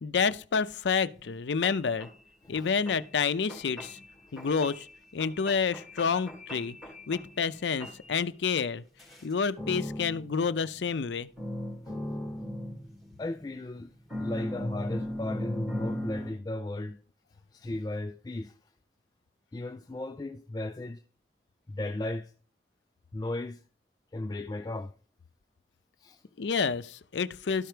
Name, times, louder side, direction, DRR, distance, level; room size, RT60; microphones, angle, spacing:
voice 1, 0.0-2.1 2.5-4.0 4.3-4.9 5.1-6.8 7.1-8.8 9.2-11.3 26.4-27.7, left 5 dB, 80° left, 0.5 m, -29 dB
sound 1, 1.1-1.2 1.6-2.1 2.5-3.0 3.5-4.0 4.4-4.9 5.2-7.5 7.8-8.2 9.0-11.1 11.4-13.5 14.1-16.3, left 1 dB, ahead, 2.4 m, -37 dB
voice 2, 13.2-13.9 14.2-17.0 17.5-18.5 19.5-21.0 21.7-22.3 23.1-23.6 24.1-24.9 26.0-26.2, left 2 dB, 20° left, 0.3 m, -36 dB
12.5 x 4.5 x 5.0 m
head